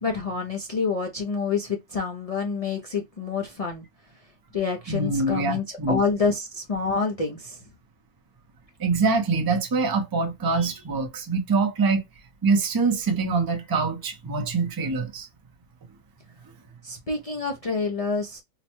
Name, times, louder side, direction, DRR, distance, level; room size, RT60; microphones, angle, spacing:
voice 1, 0.0-3.9 4.1-7.6 16.8-18.4, left 4 dB, 65° left, 0.3 m, -28 dB
voice 2, 4.9-6.0 8.8-12.0 12.4-15.3, right 4 dB, 35° right, 0.3 m, -24 dB
4.0 x 2.1 x 2.9 m
omnidirectional pair, 1.5 m